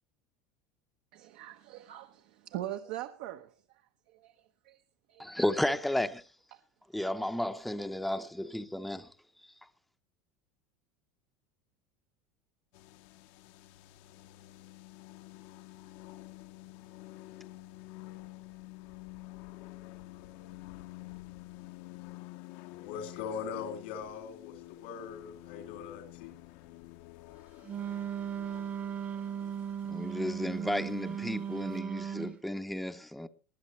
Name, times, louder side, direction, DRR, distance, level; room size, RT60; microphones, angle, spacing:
voice 1, 1.1-3.8 4.1-4.8 5.1-5.3 6.5-6.6, right 13 dB, 70° right, 0.9 m, -42 dB
voice 2, 5.2-6.2 6.9-9.1 29.9-33.3, left 1 dB, ahead, 0.7 m, -33 dB
sound 1, 12.7-31.8, left 17 dB, 65° left, 0.8 m, -49 dB
voice 3, 22.7-26.3, left 6 dB, 85° left, 2.5 m, -41 dB
Wind instrument woodwind instrument, 27.6-32.4, right 8 dB, 30° right, 0.9 m, -37 dB
20.0 x 12.0 x 3.1 m
supercardioid pair, 145°, 5 cm